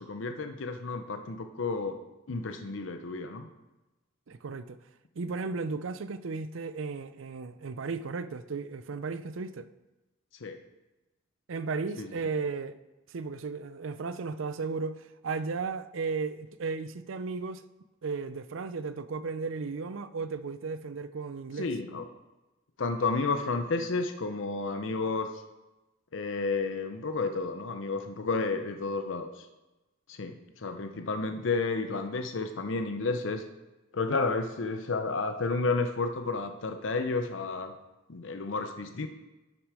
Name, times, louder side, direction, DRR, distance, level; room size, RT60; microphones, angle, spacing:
voice 1, 0.0-2.0 2.3-3.5 10.4-10.6 12.0-12.1 21.6-22.0 22.8-25.3 26.1-29.5 30.1-33.4 33.9-37.7 38.1-39.1, left 3 dB, 75° left, 0.7 m, -31 dB
voice 2, 4.3-4.8 5.2-9.7 11.5-12.8 13.1-17.6 18.0-21.7, right 4 dB, 85° right, 0.5 m, -35 dB
11.5 x 6.2 x 4.9 m
head